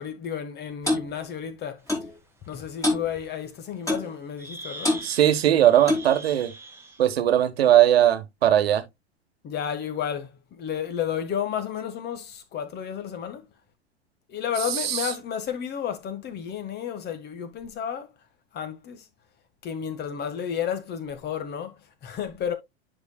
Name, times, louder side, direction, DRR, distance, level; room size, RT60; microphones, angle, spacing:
voice 1, 0.0-1.8 2.5-4.9 9.4-13.4 14.3-18.1 18.5-19.0 19.6-22.5, left 8 dB, 30° left, 1.5 m, -32 dB
Clock, 0.9-1.1 1.9-2.1 2.8-3.1 3.9-4.1 4.8-5.1 5.9-6.1, left 2 dB, 10° left, 3.1 m, -24 dB
sound 1, 1.9-2.0 2.5-2.6 4.0-4.1 4.4-7.1, right 2 dB, 10° right, 1.3 m, -42 dB
voice 2, 5.0-6.5 7.0-8.8 14.7-15.1, right 11 dB, 65° right, 1.2 m, -20 dB
10.5 x 5.1 x 2.2 m
figure-of-eight pair, 90°, 32 cm